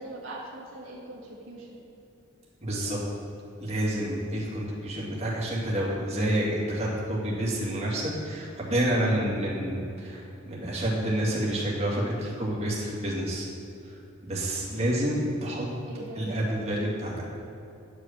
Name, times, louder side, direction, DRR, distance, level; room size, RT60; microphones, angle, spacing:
voice 1, 0.0-1.8 2.7-3.1 4.2-4.6 5.0-5.3 15.8-16.3, right 1 dB, 85° right, -5 dB, 1.6 m, -42 dB
voice 2, 2.6-3.0 3.6-13.5 14.2-15.7 16.2-17.1, right 1 dB, 35° right, -5 dB, 2.3 m, -28 dB
10.5 x 5.1 x 7.4 m, 2.7 s
head